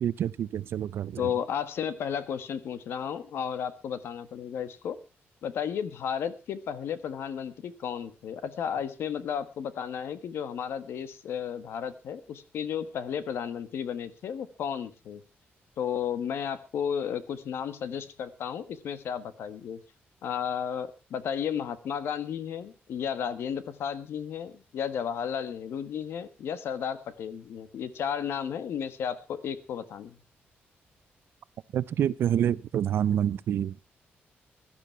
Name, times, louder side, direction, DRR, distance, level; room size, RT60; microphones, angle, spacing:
voice 1, 0.0-1.2 31.7-33.8, right 10 dB, 70° right, 0.6 m, -27 dB
voice 2, 1.2-5.0 5.4-15.2 15.8-19.8 20.2-30.2, left 8 dB, 75° left, 1.4 m, -33 dB
16.5 x 12.0 x 4.5 m
wide cardioid pair, 155°, 4 cm